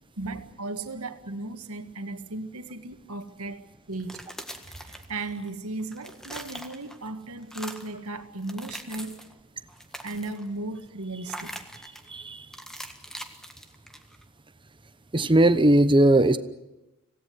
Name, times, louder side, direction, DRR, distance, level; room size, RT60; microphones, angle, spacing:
voice 1, 0.2-4.2 4.8-9.2 10.0-11.6, right 2 dB, 70° right, 1.8 m, -36 dB
sound 1, 3.9-5.5 5.8-7.1 7.4-8.0 8.4-9.3 9.7-10.5 11.3-12.1 12.5-14.2, equal, ahead, 1.6 m, -42 dB
voice 2, 12.1-12.4 15.1-16.4, right 1 dB, 20° right, 1.0 m, -19 dB
26.0 x 17.5 x 9.6 m
head